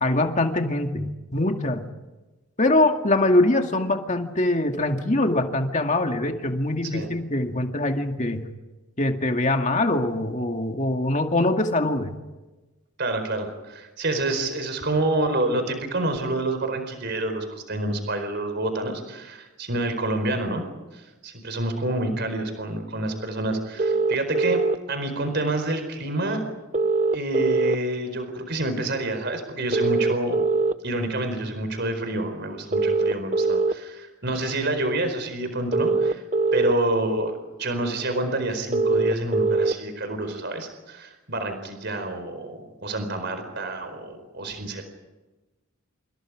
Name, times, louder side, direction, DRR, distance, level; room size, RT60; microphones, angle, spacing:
voice 1, 0.0-1.8 2.6-8.4 9.0-12.1, left 2 dB, 35° left, 4 dB, 2.2 m, -23 dB
voice 2, 13.0-20.6 20.9-24.6 24.9-26.4 27.1-30.5 30.8-36.2 36.5-44.8, right 2 dB, 50° right, 7 dB, 4.6 m, -28 dB
sound 1, 23.8-24.8 26.7-27.8 29.7-30.7 32.7-33.7 35.7-36.7 38.7-39.7, right 3 dB, 35° right, 0.8 m, -22 dB
28.5 x 28.5 x 5.0 m, 1.1 s
head